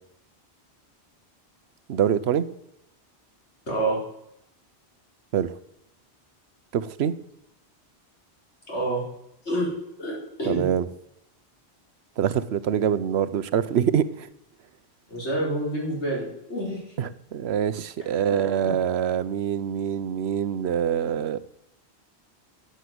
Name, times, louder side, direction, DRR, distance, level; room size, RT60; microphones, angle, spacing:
voice 1, 1.9-2.5 5.3-5.5 6.7-7.1 10.5-10.8 12.2-14.3 17.0-21.4, right 9 dB, 75° right, 15 dB, 1.0 m, -25 dB
voice 2, 3.7-4.0 8.7-9.0 9.4-9.7 10.0-10.6 15.1-16.9 18.6-18.8, right 1 dB, 90° left, -3 dB, 5.0 m, -28 dB
11.0 x 7.7 x 7.8 m, 0.80 s
omnidirectional pair, 1.1 m